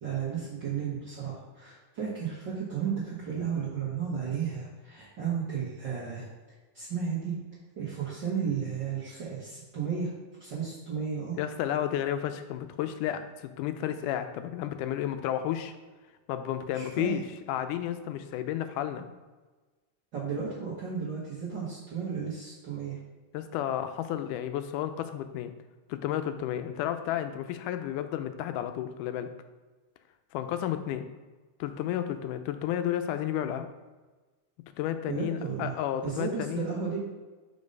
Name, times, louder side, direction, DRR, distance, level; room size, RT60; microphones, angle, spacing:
voice 1, 0.0-6.3 6.7-7.3 7.8-11.4 16.7-17.2 20.1-23.0 35.0-37.0, right 6 dB, 55° right, -7 dB, 1.2 m, -33 dB
voice 2, 11.3-15.7 16.3-17.2 17.5-19.1 23.3-25.5 25.9-29.3 30.3-31.1 31.6-33.7 34.8-36.7, left 11 dB, 85° left, 9 dB, 2.0 m, -32 dB
5.3 x 4.5 x 5.2 m, 1.3 s
omnidirectional pair, 3.6 m